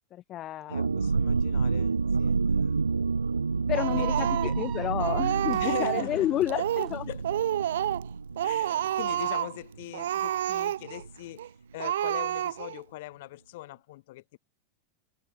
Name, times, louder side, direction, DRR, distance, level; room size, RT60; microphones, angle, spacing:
voice 1, 0.1-0.9 3.7-7.0, left 13 dB, 30° left, 1.7 m, -30 dB
voice 2, 0.7-2.8 3.9-4.5 5.6-6.3 6.5-6.7 7.1-7.2 8.4-14.4, left 18 dB, 50° left, 3.1 m, -41 dB
sound 1, 0.7-10.1 10.4-10.5 10.8-11.1, right 4 dB, 75° right, 0.6 m, -29 dB
sound 2, 3.7-6.9, right 15 dB, 35° right, 2.1 m, -43 dB
Speech, 3.7-4.7 5.0-6.1 6.5-7.0 7.2-8.1 8.4-9.6 9.9-11.0 11.4-11.5 11.8-12.8, right 11 dB, 60° right, 1.0 m, -29 dB
figure-of-eight pair, 90°, 0 cm